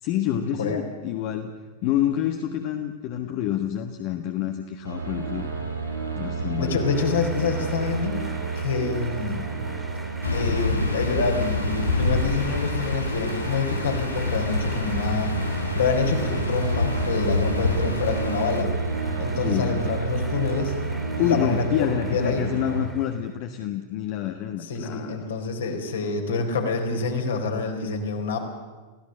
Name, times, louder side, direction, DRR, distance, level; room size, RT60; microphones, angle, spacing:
voice 1, 0.0-1.5 1.8-5.5 6.2-6.8 19.4-19.8 21.2-25.3, left 10 dB, 45° left, 6 dB, 1.4 m, -27 dB
sound 1, 4.8-22.9, right 4 dB, 75° right, 6.3 m, -30 dB
voice 2, 6.6-8.2 8.6-9.5 10.3-15.3 15.7-18.7 19.2-20.7 21.2-22.5 24.6-28.4, left 4 dB, 65° left, 3 dB, 3.9 m, -27 dB
sound 2, 6.9-23.4, right 1 dB, 5° right, 2.5 m, -44 dB
sound 3, 10.2-18.6, left 3 dB, 85° left, 1.9 m, -27 dB
29.5 x 16.0 x 6.4 m, 1.3 s
figure-of-eight pair, 90°, 0 cm